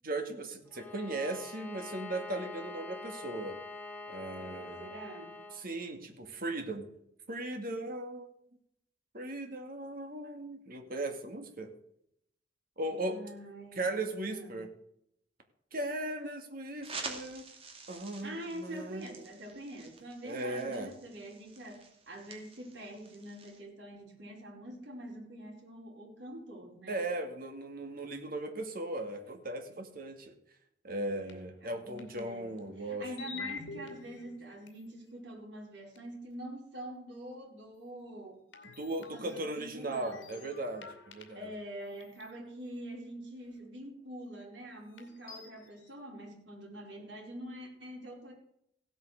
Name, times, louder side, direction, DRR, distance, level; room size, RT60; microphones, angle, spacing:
voice 1, 0.0-3.6 4.1-4.9 5.5-6.9 7.3-8.3 9.1-11.7 12.8-13.2 13.8-14.7 15.7-17.4 17.9-19.1 20.2-20.9 26.9-30.3 30.8-33.0 33.3-33.5 38.8-41.5, right 2 dB, 50° right, 4 dB, 2.3 m, -37 dB
Bowed string instrument, 0.7-5.7, left 2 dB, 10° left, 1.6 m, -45 dB
voice 2, 4.4-5.3 13.0-13.9 14.3-14.6 18.2-27.0 30.9-38.4 39.1-40.6 41.3-48.3, right 1 dB, 70° right, -1 dB, 4.9 m, -45 dB
sound 1, 16.8-23.6, right 4 dB, 30° right, 2.5 m, -48 dB
sound 2, 31.3-31.4 32.0-32.6 33.2-35.1 35.9-36.0 38.5-41.6 42.0-42.3 43.5-43.6 44.9-45.8, left 5 dB, 80° left, 2.5 m, -48 dB
16.5 x 8.6 x 6.5 m, 0.73 s
head